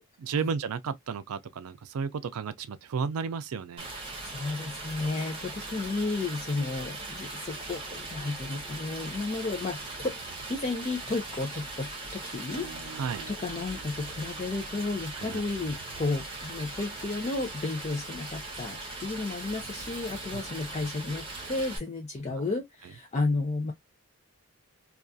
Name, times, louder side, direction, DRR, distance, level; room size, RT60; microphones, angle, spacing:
voice 1, 0.0-3.9 12.9-13.3 15.2-15.4 20.3-20.4, right 5 dB, 85° right, 0.4 m, -33 dB
Stream, 3.8-21.8, right 2 dB, 25° right, 0.9 m, -40 dB
voice 2, 4.2-10.2 10.5-13.0 13.3-23.7, left 3 dB, 30° left, 0.4 m, -33 dB
Acoustic guitar / Strum, 12.5-17.7, right 2 dB, 60° left, 0.7 m, -51 dB
2.3 x 2.3 x 2.5 m
head